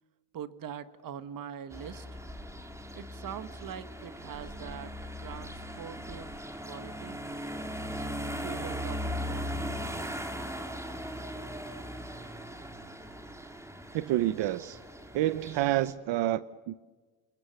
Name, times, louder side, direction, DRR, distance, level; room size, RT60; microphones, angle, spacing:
voice 1, 0.3-2.2 2.9-6.4 6.6-7.2 8.4-10.2, right 8 dB, 50° right, 1.6 m, -43 dB
sound 1, 1.7-15.9, equal, 5° right, 2.3 m, -39 dB
voice 2, 13.9-14.8 15.1-16.8, right 14 dB, 85° right, 0.9 m, -28 dB
29.0 x 28.5 x 7.0 m
cardioid pair, 155°, 42 cm